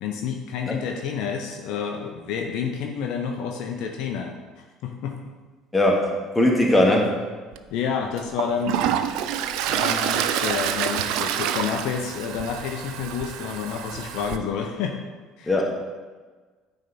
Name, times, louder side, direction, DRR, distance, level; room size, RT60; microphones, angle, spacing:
voice 1, 0.0-5.2 7.7-8.9 9.7-15.0 15.4-15.5, left 6 dB, 65° left, 3 dB, 0.6 m, -29 dB
voice 2, 5.7-7.1 15.4-15.7, left 1 dB, 10° left, -1 dB, 1.5 m, -20 dB
Toilet flush, 7.5-7.6 8.2-14.4, right 10 dB, 65° right, 0.3 m, -27 dB
9.0 x 3.4 x 4.2 m, 1.4 s
hypercardioid pair, 60°, 0 cm